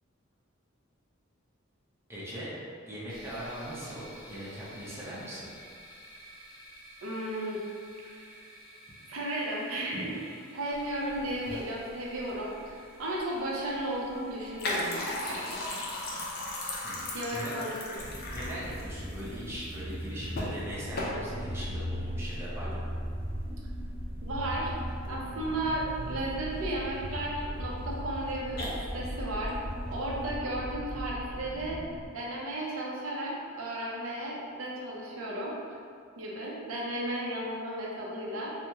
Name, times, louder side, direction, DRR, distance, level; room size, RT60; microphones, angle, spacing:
voice 1, 2.1-2.5 2.9-5.5 16.8-17.5 18.3-22.8, equal, 10° right, -8 dB, 0.6 m, -40 dB
sound 1, 3.1-20.3, equal, 20° left, 0.8 m, -53 dB
voice 2, 7.0-7.7 8.1-8.3 9.0-15.7 17.1-17.7 24.2-24.7 25.1-29.6 29.9-31.8 32.1-35.8 36.2-38.5, right 1 dB, 85° right, -4 dB, 0.6 m, -34 dB
sound 2, 10.7-30.3, left 1 dB, 50° left, 0.5 m, -39 dB
sound 3, 18.0-32.1, equal, 75° left, 0.8 m, -38 dB
2.9 x 2.1 x 3.4 m, 2.3 s
head